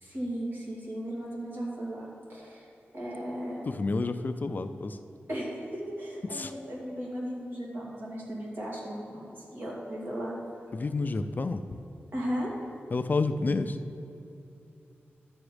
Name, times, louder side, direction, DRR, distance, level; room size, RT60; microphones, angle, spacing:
voice 1, 0.0-2.7 2.9-3.7 5.3-10.3 12.1-12.5, equal, 50° right, -4 dB, 2.5 m, -36 dB
voice 2, 3.7-5.0 6.3-6.5 10.7-11.8 12.9-13.8, left 3 dB, 40° left, 9 dB, 0.4 m, -29 dB
11.5 x 7.0 x 5.0 m, 2.7 s
wide cardioid pair, 110°, 4 cm